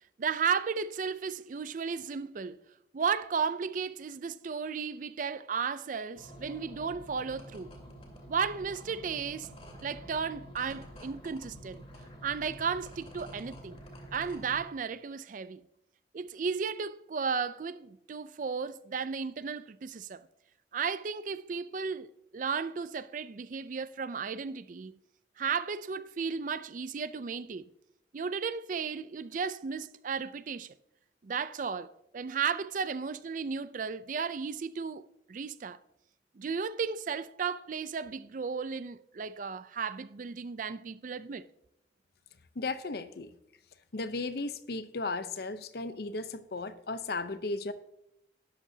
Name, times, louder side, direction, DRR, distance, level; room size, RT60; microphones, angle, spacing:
voice 1, 0.2-2.6 2.9-7.7 8.3-9.5 9.8-11.8 12.2-13.8 14.1-15.6 16.1-20.2 20.7-25.0 25.4-27.7 28.1-30.7 31.2-35.8 36.4-41.5, right 5 dB, 45° right, 0.4 m, -34 dB
sound 1, 6.1-14.6, equal, 35° left, 2.4 m, -48 dB
voice 2, 42.6-43.3 43.9-47.7, left 3 dB, 60° left, 0.7 m, -35 dB
12.5 x 11.0 x 2.8 m
head